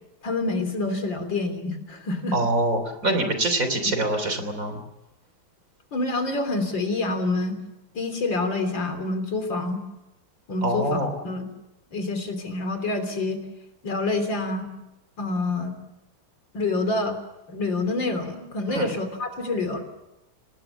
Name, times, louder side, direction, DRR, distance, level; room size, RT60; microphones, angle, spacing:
voice 1, 0.2-2.4 5.9-7.6 7.9-9.8 10.5-11.5 11.9-13.4 13.8-14.7 15.2-15.8 16.5-17.2 17.5-19.8, left 2 dB, 70° left, 8 dB, 4.0 m, -27 dB
voice 2, 2.3-4.8 10.6-11.1 18.7-18.9, right 1 dB, 45° right, 8 dB, 3.7 m, -25 dB
27.5 x 19.5 x 7.1 m, 0.95 s
omnidirectional pair, 2.1 m